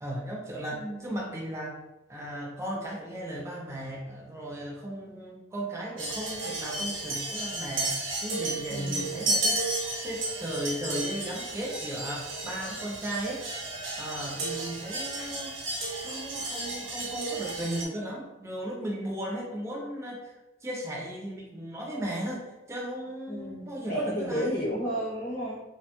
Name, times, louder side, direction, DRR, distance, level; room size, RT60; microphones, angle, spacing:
voice 1, 0.0-1.8 2.1-9.6 10.0-13.4 14.0-15.5 16.0-20.2 20.6-24.5, right 1 dB, 15° right, -3 dB, 0.4 m, -36 dB
voice 2, 0.7-1.3 8.7-9.3 23.3-25.6, equal, 40° left, -6 dB, 0.8 m, -33 dB
sound 1, 6.0-17.8, right 2 dB, 70° right, 0.8 m, -33 dB
2.7 x 2.1 x 2.9 m, 0.99 s
head